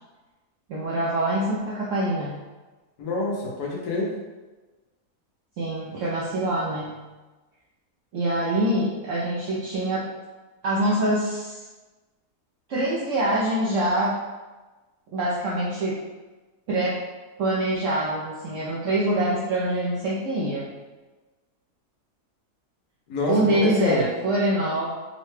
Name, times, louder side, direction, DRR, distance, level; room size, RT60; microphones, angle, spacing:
voice 1, 0.7-2.3 5.6-7.0 8.1-10.1 10.6-11.6 12.7-14.2 15.1-16.0 16.7-17.0 17.4-20.7 23.3-25.0, right 1 dB, 65° right, -6 dB, 0.8 m, -25 dB
voice 2, 3.0-4.1 23.1-24.0, left 3 dB, 80° left, -3 dB, 1.4 m, -26 dB
3.7 x 2.2 x 3.1 m, 1.2 s
omnidirectional pair, 1.7 m